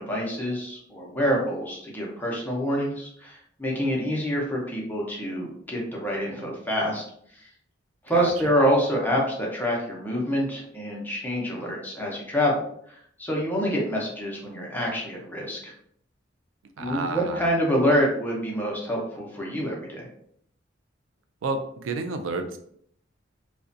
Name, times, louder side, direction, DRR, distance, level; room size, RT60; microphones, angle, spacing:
voice 1, 0.0-7.0 7.3-7.4 8.0-15.7 16.8-20.1, equal, 10° left, -3 dB, 0.6 m, -26 dB
voice 2, 8.1-8.5 16.8-17.4 21.4-22.6, right 3 dB, 90° right, 7 dB, 0.3 m, -30 dB
2.4 x 2.1 x 2.5 m, 0.66 s
head